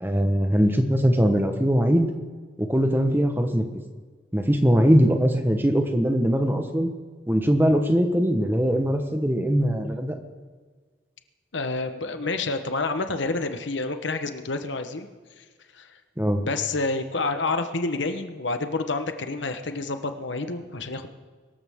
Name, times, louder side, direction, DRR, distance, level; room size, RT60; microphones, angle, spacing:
voice 1, 0.0-2.1 2.6-3.8 4.3-6.9 7.3-10.2 16.2-16.4, equal, 10° right, 5 dB, 1.2 m, -21 dB
voice 2, 11.5-15.1 15.7-15.9 16.4-21.1, left 3 dB, 80° left, 8 dB, 1.1 m, -28 dB
23.5 x 13.5 x 3.7 m, 1.5 s
head